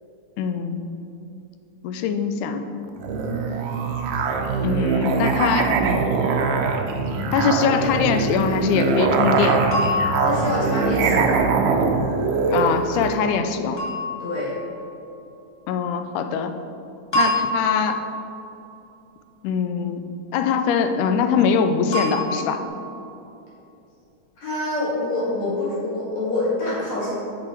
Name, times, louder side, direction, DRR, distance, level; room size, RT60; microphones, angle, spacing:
voice 1, 0.4-0.8 1.8-2.7 4.6-5.7 7.3-9.6 12.5-13.8 15.7-16.5 17.2-18.0 19.4-22.6, left 6 dB, 85° left, 8 dB, 2.0 m, -22 dB
Musical instrument, 3.0-13.2, right 4 dB, 85° right, 1.3 m, -22 dB
sound 1, 9.7-11.2 13.8-14.9 17.1-18.5 21.9-22.7, equal, 25° left, 0.6 m, -27 dB
voice 2, 10.2-11.5 14.2-14.5 24.4-27.1, left 2 dB, 65° left, -8 dB, 3.2 m, -26 dB
7.6 x 6.0 x 4.4 m, 2.8 s
omnidirectional pair, 3.5 m